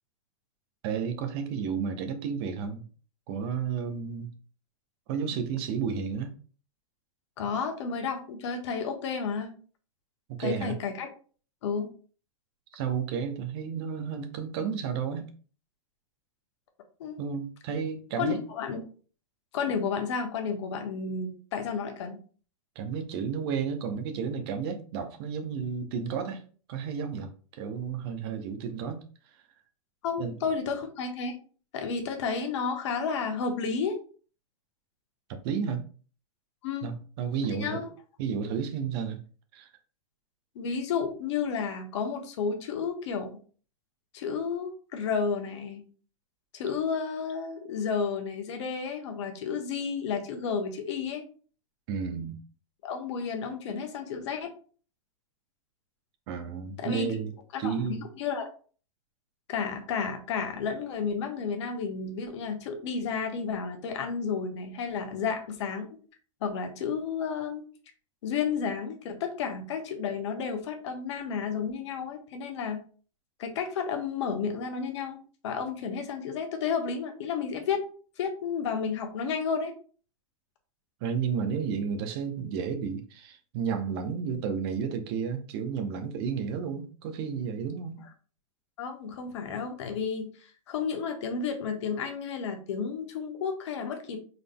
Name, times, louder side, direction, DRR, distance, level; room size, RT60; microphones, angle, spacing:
voice 1, 0.8-2.8 3.3-4.3 5.1-6.3 10.3-10.8 12.7-15.3 17.2-18.4 22.8-26.4 26.7-29.0 30.2-30.4 35.3-35.8 36.8-37.8 38.2-39.2 39.5-39.7 51.9-52.4 56.3-57.3 57.6-58.0 81.0-88.0, right 6 dB, 45° right, 0.8 m, -32 dB
voice 2, 7.4-9.5 10.4-11.1 11.6-11.9 17.0-17.2 18.2-18.8 19.5-22.2 30.0-31.3 31.7-34.0 36.6-36.9 37.6-37.9 40.5-43.3 44.1-45.8 46.5-51.2 52.8-54.5 56.8-57.1 57.5-58.5 59.5-65.9 66.4-67.6 68.2-72.8 73.4-77.8 78.2-79.7 88.8-94.2, left 6 dB, 55° left, 1.0 m, -32 dB
4.9 x 3.9 x 2.2 m
figure-of-eight pair, 100°, 18 cm